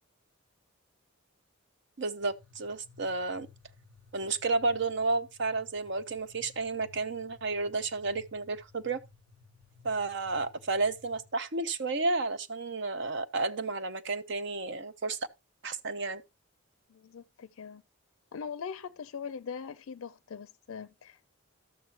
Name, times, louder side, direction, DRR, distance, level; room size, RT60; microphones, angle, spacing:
voice 1, 2.0-3.5 4.1-9.0 9.8-15.2 15.6-16.2, right 3 dB, 55° right, 0.7 m, -32 dB
sound 1, 2.2-11.3, left 5 dB, 85° right, 4.4 m, -58 dB
voice 2, 16.9-17.8 18.3-21.3, left 6 dB, 70° left, 0.4 m, -41 dB
12.5 x 7.8 x 2.9 m
head